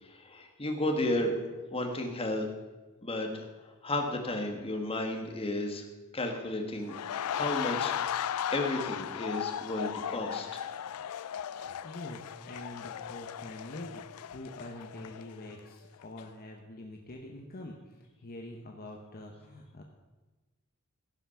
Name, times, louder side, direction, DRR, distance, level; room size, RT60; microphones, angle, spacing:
voice 1, 0.0-1.3 1.7-2.5 3.0-5.8 6.1-8.0 8.5-10.6, left 1 dB, 25° left, 2 dB, 1.5 m, -33 dB
sound 1, 6.8-15.7 16.0-16.2, left 9 dB, 90° left, 0.4 m, -36 dB
voice 2, 11.8-19.8, left 1 dB, 45° left, 1 dB, 1.0 m, -45 dB
16.5 x 5.9 x 5.8 m, 1.2 s
head